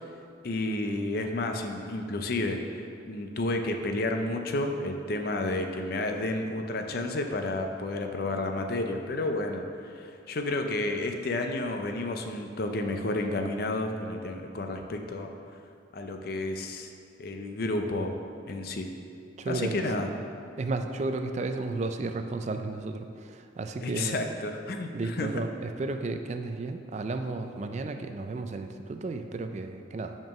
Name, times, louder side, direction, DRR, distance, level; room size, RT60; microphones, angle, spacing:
voice 1, 0.4-2.6 3.1-15.3 15.9-16.9 17.2-18.2 18.5-18.9 19.5-20.1 23.8-25.3, left 2 dB, 50° left, 4 dB, 0.5 m, -31 dB
voice 2, 19.4-19.8 20.6-24.2 24.9-30.2, right 3 dB, 35° right, 7 dB, 0.3 m, -33 dB
6.0 x 4.5 x 5.9 m, 2.5 s
head